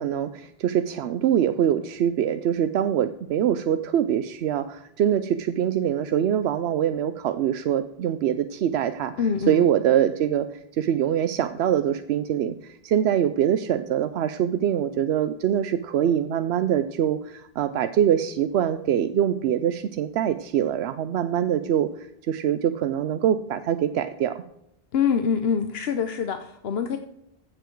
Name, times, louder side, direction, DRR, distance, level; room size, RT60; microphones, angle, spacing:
voice 1, 0.0-9.1 9.5-10.5 10.7-24.4, right 10 dB, 90° right, 11 dB, 0.9 m, -24 dB
voice 2, 9.2-9.7 24.9-27.0, left 6 dB, 75° left, 7 dB, 1.0 m, -25 dB
15.5 x 7.0 x 4.5 m, 0.80 s
omnidirectional pair, 1.1 m